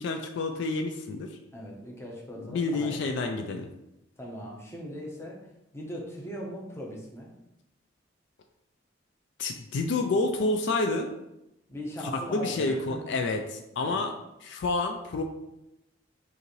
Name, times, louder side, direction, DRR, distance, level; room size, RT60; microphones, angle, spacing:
voice 1, 0.0-1.4 2.4-3.7 9.4-11.1 12.1-14.1 14.4-15.2, left 3 dB, 65° left, 5 dB, 0.4 m, -29 dB
voice 2, 1.5-3.0 4.2-5.4 5.7-7.3 11.7-13.0 13.8-14.1, equal, 15° left, -2 dB, 0.8 m, -39 dB
5.4 x 2.6 x 3.1 m, 0.90 s
head